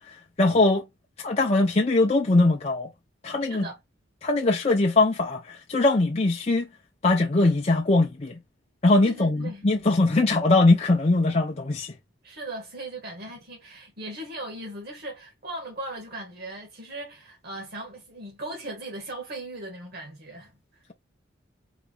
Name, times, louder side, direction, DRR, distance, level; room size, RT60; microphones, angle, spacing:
voice 1, 0.4-0.8 1.2-2.9 3.2-3.7 4.2-6.7 7.0-8.4 8.8-11.9, left 2 dB, 30° left, 0.6 m, -21 dB
voice 2, 3.5-3.8 9.0-9.6 12.2-20.8, right 1 dB, 55° right, 1.4 m, -38 dB
4.0 x 3.5 x 2.2 m
head